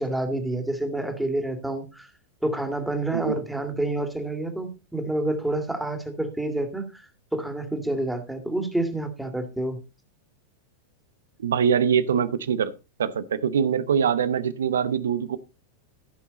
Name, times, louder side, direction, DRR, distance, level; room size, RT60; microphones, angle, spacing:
voice 1, 0.0-2.1 2.4-9.8, right 1 dB, 5° right, 6 dB, 2.3 m, -28 dB
voice 2, 11.4-12.7 13.0-15.4, right 7 dB, 65° right, 16 dB, 0.8 m, -23 dB
15.0 x 6.1 x 4.0 m, 0.28 s
figure-of-eight pair, 90°, 0 cm